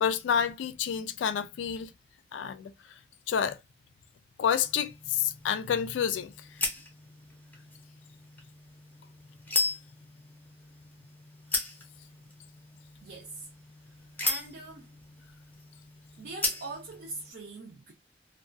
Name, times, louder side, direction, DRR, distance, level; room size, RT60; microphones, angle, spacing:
voice 1, 0.0-1.9 2.3-2.7 3.3-3.6 4.4-6.3, left 8 dB, 85° left, 0.3 m, -29 dB
sound 1, 4.6-17.3, left 2 dB, 10° left, 0.5 m, -37 dB
voice 2, 13.0-13.5 14.2-14.9 16.2-17.9, right 3 dB, 60° right, 0.5 m, -42 dB
2.3 x 2.2 x 2.4 m
head